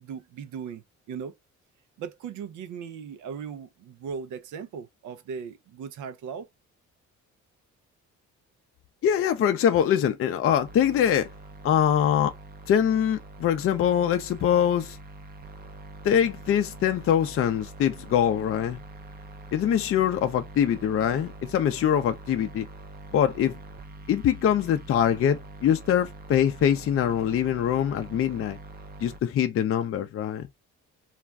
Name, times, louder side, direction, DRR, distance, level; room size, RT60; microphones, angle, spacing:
voice 1, 0.0-1.3 2.0-6.5, right 6 dB, 75° right, 0.6 m, -38 dB
voice 2, 9.0-11.3 11.6-12.3 12.7-15.0 16.0-18.8 19.5-22.7 23.1-23.6 24.1-28.6 29.0-30.4, left 9 dB, 50° left, 0.5 m, -23 dB
sound 1, 10.6-29.2, right 2 dB, 30° right, 0.5 m, -44 dB
2.4 x 2.2 x 3.4 m
cardioid pair, 90°, 30 cm